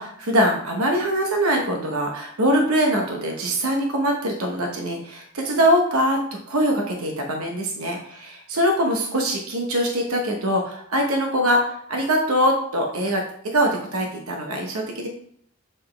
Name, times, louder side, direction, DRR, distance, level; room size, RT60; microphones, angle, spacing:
voice 1, 0.0-6.2 6.5-15.1, equal, 85° right, 2 dB, 0.9 m, -23 dB
7.6 x 3.9 x 3.2 m, 0.66 s
head